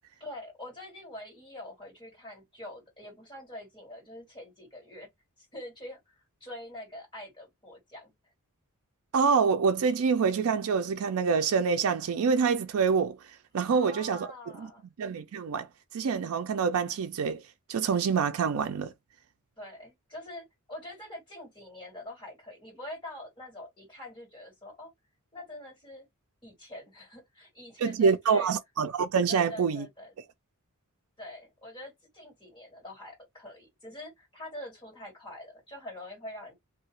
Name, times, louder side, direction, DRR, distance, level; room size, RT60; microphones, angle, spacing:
voice 1, 0.2-5.1 5.4-8.1 13.7-14.9 19.6-24.9 25.3-26.1 26.4-28.5 29.3-30.1 31.2-36.5, left 1 dB, 20° left, 2.0 m, -45 dB
voice 2, 9.1-13.2 13.5-14.3 14.6-14.7 15.0-15.7 15.9-17.4 17.7-18.9 27.8-29.8, right 5 dB, 75° right, 0.4 m, -26 dB
2.7 x 2.4 x 2.9 m
head